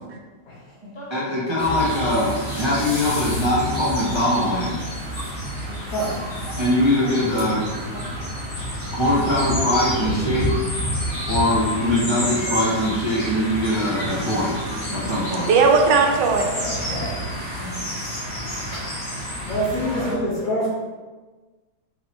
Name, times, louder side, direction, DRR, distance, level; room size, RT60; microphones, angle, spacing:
voice 1, 0.8-4.8 6.6-7.6 8.9-10.5 11.3-14.5 14.9-15.5 16.6-17.1 17.4-17.8 19.8-20.6, left 1 dB, 40° right, -8 dB, 0.3 m, -22 dB
sound 1, 1.6-20.1, equal, 55° left, 1.7 m, -29 dB
voice 2, 7.0-8.1 12.5-12.6 13.9-14.0 14.9-16.5 18.8-18.9 20.6-20.7, right 4 dB, 80° right, 2 dB, 1.2 m, -22 dB
voice 3, 16.6-17.1 19.5-20.7, equal, 70° left, -11 dB, 1.8 m, -25 dB
4.6 x 3.0 x 3.0 m, 1.3 s
omnidirectional pair, 1.9 m